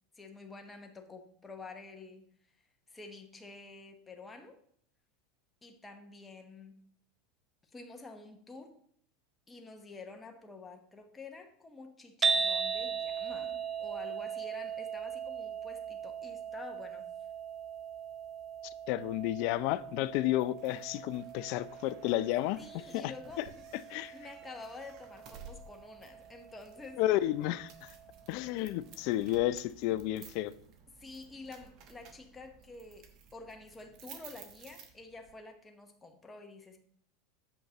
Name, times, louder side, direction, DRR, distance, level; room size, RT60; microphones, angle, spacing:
voice 1, 0.1-2.2 2.9-4.6 5.6-6.8 7.7-8.7 9.5-17.1 22.6-23.6 24.1-27.0 31.0-36.8, left 3 dB, 15° left, 1.1 m, -49 dB
sound 1, 12.2-28.4, right 6 dB, 25° right, 0.5 m, -39 dB
voice 2, 18.9-23.1 23.4-23.5 23.9-24.1 27.0-27.9 28.3-30.5, left 15 dB, 55° left, 0.3 m, -31 dB
sound 2, 20.4-35.4, right 6 dB, 50° right, 1.0 m, -56 dB
7.7 x 5.1 x 2.9 m
hypercardioid pair, 85°, 0 cm